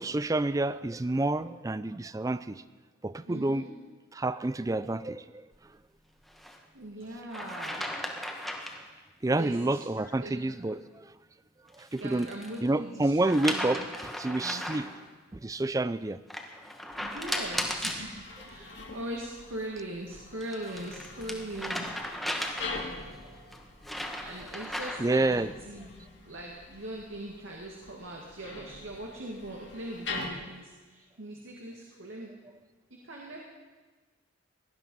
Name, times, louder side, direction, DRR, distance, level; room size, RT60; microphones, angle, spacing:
voice 1, 0.0-2.5 3.0-3.7 4.1-5.2 9.2-10.8 11.9-12.3 12.6-13.8 14.2-14.9 15.4-16.2 25.0-25.5, right 2 dB, 15° right, 15 dB, 0.4 m, -28 dB
voice 2, 3.2-3.7 6.7-7.9 9.3-10.4 12.0-13.9 14.3-14.9 17.0-21.9 24.2-25.4 25.7-25.9 26.2-32.3 32.9-33.4, right 1 dB, 80° right, -1 dB, 2.1 m, -41 dB
sound 1, 6.3-6.6 7.3-8.8 11.7-12.6 13.3-14.9 16.3-18.0 20.1-22.9 23.5-25.2, equal, ahead, 1.3 m, -36 dB
sound 2, 16.9-30.3, left 3 dB, 60° left, 2.1 m, -44 dB
18.5 x 12.0 x 5.5 m, 1.3 s
head